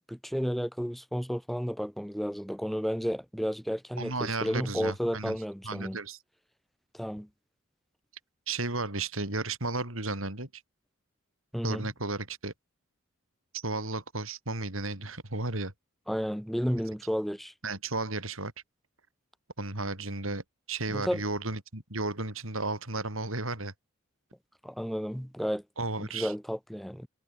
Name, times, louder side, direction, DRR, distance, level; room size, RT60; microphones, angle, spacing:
voice 1, 0.0-6.0 6.9-7.3 11.5-11.9 16.1-17.5 20.9-21.2 24.6-25.6 26.0-27.1, equal, ahead, 6.6 m, -32 dB
voice 2, 4.0-5.4 5.6-6.2 8.5-10.5 11.6-12.5 13.5-15.7 17.6-18.5 19.6-20.4 20.7-23.7 25.8-26.3, right 2 dB, 90° right, 6.9 m, -33 dB
head